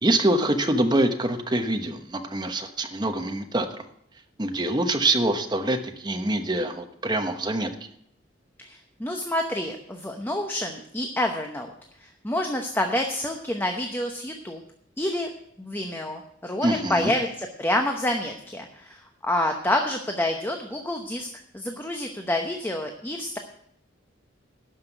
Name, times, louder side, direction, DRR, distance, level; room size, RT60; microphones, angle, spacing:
voice 1, 0.0-3.8 4.4-7.7 16.6-17.1, right 1 dB, 25° right, 6 dB, 1.1 m, -25 dB
voice 2, 8.6-11.7 12.0-14.6 15.0-15.3 15.6-21.3 21.5-23.4, left 1 dB, 10° left, 3 dB, 0.9 m, -28 dB
12.0 x 5.9 x 9.2 m, 0.70 s
head